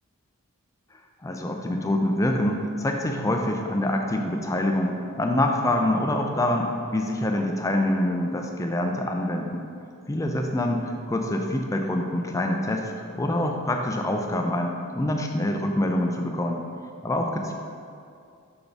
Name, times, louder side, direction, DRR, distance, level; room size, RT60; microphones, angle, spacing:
voice 1, 1.2-9.6 10.1-16.6 17.0-17.5, left 1 dB, 15° left, 3 dB, 0.4 m, -25 dB
5.8 x 4.1 x 5.1 m, 2.4 s
head